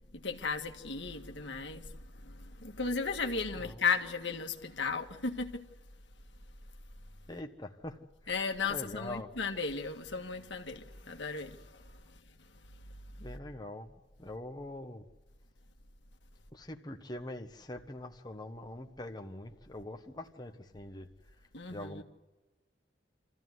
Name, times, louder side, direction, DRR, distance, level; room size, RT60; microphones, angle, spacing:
voice 1, 0.1-5.7 8.3-12.0 21.5-22.0, left 4 dB, 80° left, 1.8 m, -35 dB
voice 2, 3.5-3.8 7.3-8.3 8.6-9.3 13.2-15.0 16.5-21.1 21.4-22.0, left 1 dB, 25° left, 1.2 m, -44 dB
26.0 x 15.0 x 9.5 m
head